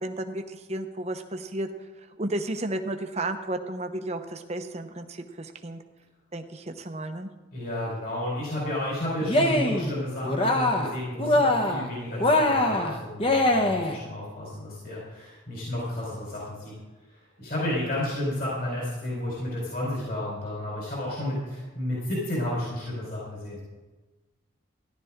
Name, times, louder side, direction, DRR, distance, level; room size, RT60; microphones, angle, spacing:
voice 1, 0.0-1.7 2.2-5.8 6.3-7.3, right 1 dB, 35° right, 6 dB, 0.9 m, -33 dB
voice 2, 7.5-16.7 17.4-23.6, left 1 dB, 50° left, -5 dB, 4.2 m, -32 dB
Cheering, 9.2-9.9 10.2-10.9 11.2-11.9 12.2-14.0, left 1 dB, 25° left, 1.1 m, -23 dB
15.0 x 11.5 x 3.7 m, 1.2 s
head